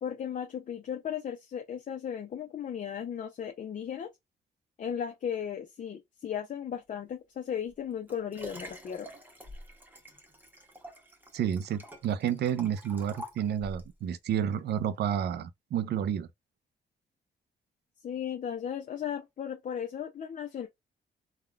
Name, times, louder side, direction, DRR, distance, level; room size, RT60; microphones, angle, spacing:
voice 1, 0.0-4.1 4.8-9.1 18.0-20.7, left 8 dB, 50° left, 0.6 m, -36 dB
Liquid, 7.7-13.9 14.6-14.7, equal, 10° right, 0.9 m, -47 dB
voice 2, 11.3-16.3, right 9 dB, 75° right, 0.5 m, -30 dB
3.5 x 2.2 x 2.3 m
cardioid pair, 95°, 17 cm